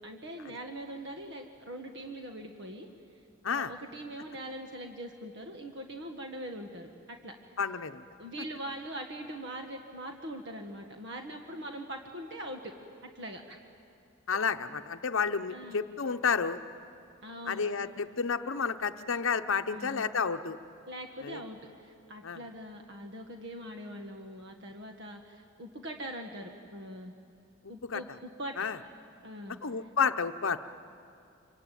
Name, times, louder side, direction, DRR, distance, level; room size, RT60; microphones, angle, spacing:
voice 1, 0.0-2.9 3.4-7.3 8.2-12.7 13.0-13.6 15.5-15.9 17.2-17.6 19.6-20.1 20.9-27.1 27.7-28.5 29.2-29.6, right 1 dB, 55° right, 4 dB, 1.6 m, -42 dB
voice 2, 7.6-8.0 14.3-16.6 17.5-20.6 21.2-21.4 22.2-22.4 27.9-28.0 28.6-28.8 29.6-30.6, left 5 dB, 65° left, 9 dB, 0.8 m, -30 dB
27.0 x 23.5 x 9.2 m, 2.5 s
head